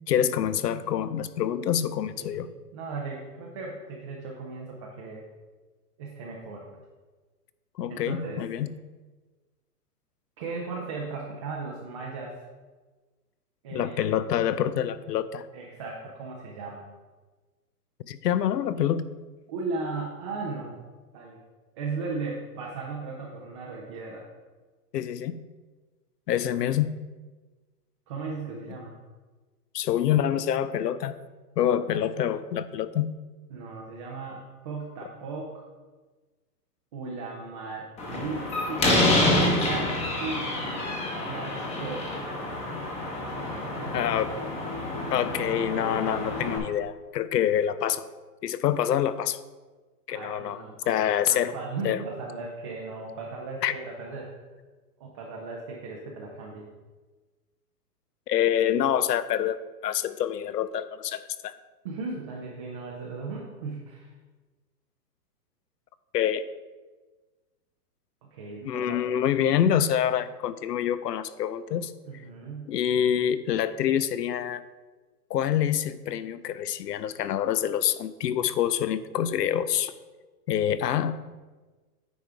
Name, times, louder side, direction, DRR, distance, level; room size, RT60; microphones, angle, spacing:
voice 1, 0.1-2.5 7.8-8.7 13.7-15.5 18.0-19.1 24.9-25.4 26.3-27.0 29.7-31.2 31.6-33.1 43.9-44.3 45.1-48.0 48.4-49.4 50.1-50.6 50.9-51.5 51.8-52.0 53.6-53.7 58.3-59.6 59.8-61.5 66.1-66.5 68.6-71.9 72.7-74.6 75.3-79.9 80.5-81.1, left 10 dB, 90° left, 14 dB, 0.6 m, -26 dB
voice 2, 2.2-5.3 6.0-6.7 7.9-8.4 10.4-12.4 13.6-14.1 15.5-16.9 19.5-20.8 21.1-21.4 21.7-24.3 28.1-29.0 31.9-32.0 33.5-35.6 36.9-39.1 39.6-40.6 41.2-42.1 43.7-44.2 50.1-51.0 51.3-54.3 55.0-56.7 61.8-64.1 68.2-69.2 72.0-72.7, right 4 dB, 20° right, -2 dB, 0.4 m, -37 dB
Slam, 38.0-46.6, left 1 dB, 15° left, 0.9 m, -28 dB
9.5 x 4.8 x 3.4 m, 1.3 s
hypercardioid pair, 145°, 47 cm